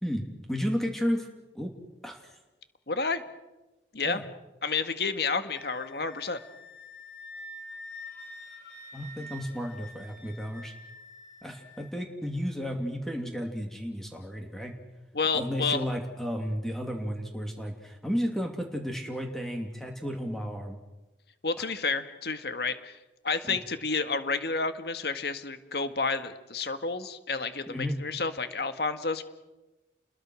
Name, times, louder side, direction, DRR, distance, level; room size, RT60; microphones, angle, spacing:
voice 1, 0.0-1.3 1.5-1.7 2.0-2.4 4.0-4.2 8.9-10.7 11.4-14.7 15.3-20.8 23.4-23.6 27.7-28.0, equal, ahead, 2 dB, 2.7 m, -33 dB
voice 2, 2.9-3.2 3.9-4.2 4.6-6.4 15.1-15.8 21.4-23.0 23.2-29.2, left 4 dB, 65° left, 9 dB, 1.8 m, -30 dB
Wind instrument woodwind instrument, 5.5-11.9, left 2 dB, 85° left, 5.1 m, -46 dB
30.0 x 21.5 x 6.4 m, 1.1 s
head